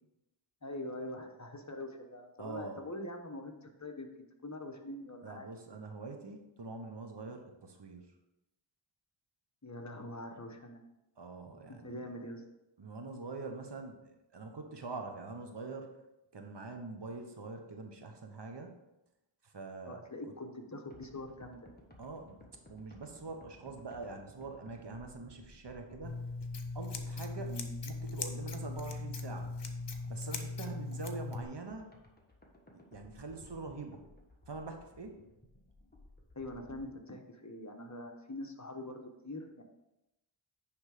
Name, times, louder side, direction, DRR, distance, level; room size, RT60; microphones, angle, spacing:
voice 1, 0.6-4.1 4.4-5.5 9.6-10.8 11.7-12.5 19.9-21.7 27.4-27.7 36.3-39.6, left 1 dB, 35° left, 3 dB, 1.1 m, -44 dB
voice 2, 2.4-2.8 5.2-8.1 11.2-12.0 12.8-15.9 16.3-18.8 19.4-20.0 22.0-26.3 26.7-27.5 27.9-29.5 30.0-31.9 32.9-34.0 34.5-35.2, right 3 dB, 55° right, 4 dB, 1.1 m, -44 dB
sound 1, 20.9-36.9, left 1 dB, 20° left, 1.5 m, -58 dB
Scissors, 26.0-31.4, left 3 dB, 60° left, 0.9 m, -39 dB
9.8 x 3.5 x 5.0 m, 0.92 s
wide cardioid pair, 50°, 48 cm